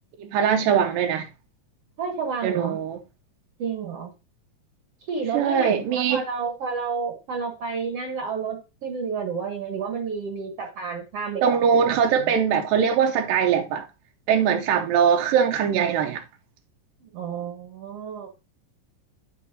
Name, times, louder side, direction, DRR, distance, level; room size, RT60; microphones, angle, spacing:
voice 1, 0.2-1.3 2.4-3.0 5.3-6.2 11.4-13.8 14.3-16.2, right 7 dB, 90° right, 2.5 m, -21 dB
voice 2, 2.0-2.8 3.6-4.1 5.0-12.3 17.1-18.3, right 5 dB, 60° right, 1.9 m, -31 dB
9.4 x 8.3 x 2.7 m
omnidirectional pair, 3.9 m